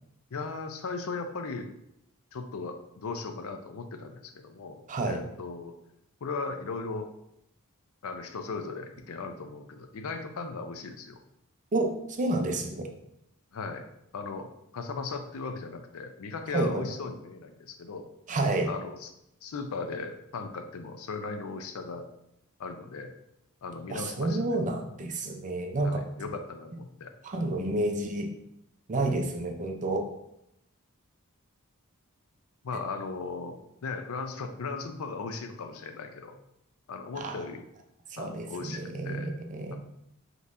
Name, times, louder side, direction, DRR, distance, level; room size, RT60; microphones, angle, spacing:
voice 1, 0.3-1.7 2.3-5.8 6.2-7.1 8.0-11.2 13.5-13.9 14.1-18.1 18.7-19.1 19.4-22.1 22.6-23.1 23.6-24.6 25.8-27.1 27.6-27.8 32.6-36.4 36.9-37.7 38.2-39.4, left 4 dB, 70° left, 6 dB, 0.5 m, -37 dB
voice 2, 4.9-5.2 11.7-12.9 16.5-16.8 18.3-18.7 23.9-26.0 27.2-28.3 28.9-30.1 37.2-37.4 38.1-39.8, right 2 dB, 35° right, 3 dB, 0.5 m, -30 dB
5.3 x 3.0 x 2.5 m, 0.80 s
head